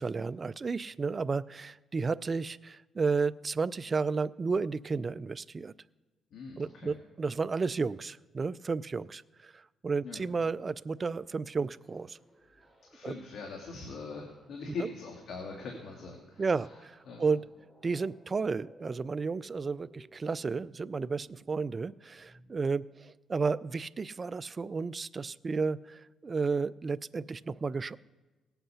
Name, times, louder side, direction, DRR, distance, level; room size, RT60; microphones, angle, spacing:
voice 1, 0.0-5.7 6.6-12.2 13.0-13.1 16.4-17.4 17.8-28.0, right 4 dB, 35° right, 18 dB, 0.3 m, -32 dB
voice 2, 6.3-6.9 10.0-10.2 12.9-16.8 17.1-17.3, left 4 dB, 70° left, 1 dB, 1.9 m, -42 dB
sound 1, 11.0-22.6, equal, 10° left, 3.5 m, -61 dB
18.0 x 8.0 x 5.6 m, 1.2 s
cardioid pair, 90°, 0 cm